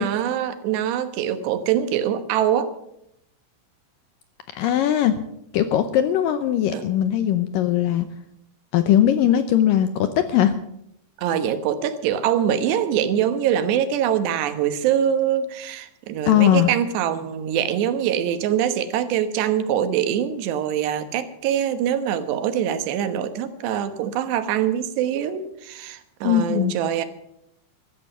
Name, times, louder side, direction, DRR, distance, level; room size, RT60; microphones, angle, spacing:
voice 1, 0.0-2.7 6.7-6.9 11.2-27.1, right 9 dB, 90° right, 10 dB, 3.4 m, -23 dB
voice 2, 4.6-5.1 5.5-8.1 8.7-10.5 16.3-16.7 26.2-26.7, left 11 dB, 80° left, 10 dB, 2.1 m, -19 dB
14.0 x 13.5 x 6.6 m, 0.77 s
omnidirectional pair, 4.7 m